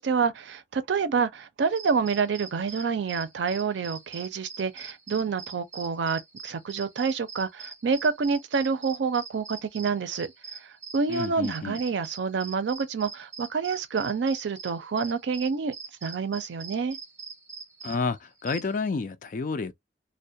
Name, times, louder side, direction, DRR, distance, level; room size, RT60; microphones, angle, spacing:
voice 1, 0.0-10.3 10.6-15.7 16.0-17.0, right 5 dB, 90° right, 0.5 m, -28 dB
sound 1, 1.6-18.9, right 5 dB, 15° right, 0.6 m, -43 dB
voice 2, 11.1-11.8 17.8-19.7, left 4 dB, 45° left, 0.4 m, -30 dB
2.2 x 2.1 x 2.7 m
head